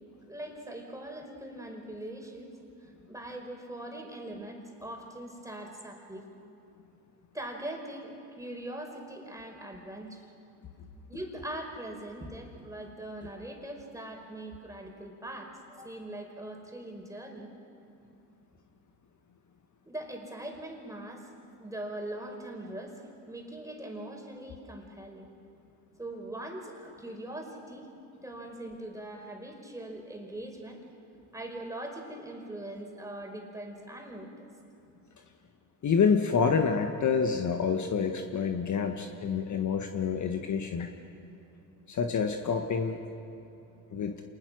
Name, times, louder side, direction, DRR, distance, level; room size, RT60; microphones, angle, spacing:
voice 1, 0.2-2.5 2.8-6.3 7.3-10.2 11.1-17.5 19.8-21.3 21.6-25.3 26.0-27.9 28.2-30.8 31.3-34.5, right 1 dB, 5° right, 2 dB, 5.0 m, -41 dB
voice 2, 35.8-40.9 41.9-43.0 43.9-44.1, left 6 dB, 40° left, 5 dB, 1.6 m, -27 dB
27.5 x 20.0 x 6.3 m, 2.8 s
supercardioid pair, 80°, 44 cm